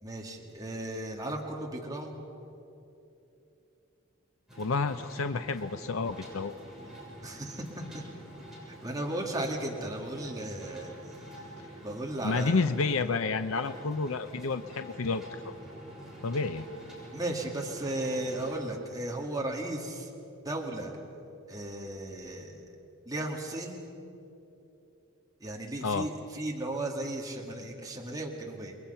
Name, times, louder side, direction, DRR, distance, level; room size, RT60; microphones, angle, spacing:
voice 1, 0.0-2.1 7.2-7.6 7.9-8.0 8.8-10.9 11.8-12.6 17.1-20.1 20.4-20.9 21.5-22.6 23.1-23.8 25.4-28.8, right 1 dB, 20° right, -1 dB, 2.3 m, -35 dB
sound 1, 4.5-18.6, equal, ahead, 7.6 m, -47 dB
voice 2, 4.6-6.5 11.6-11.7 12.2-15.5 16.2-16.7 25.8-26.1, left 4 dB, 75° left, 9 dB, 0.6 m, -30 dB
29.5 x 21.5 x 5.7 m, 2.9 s
head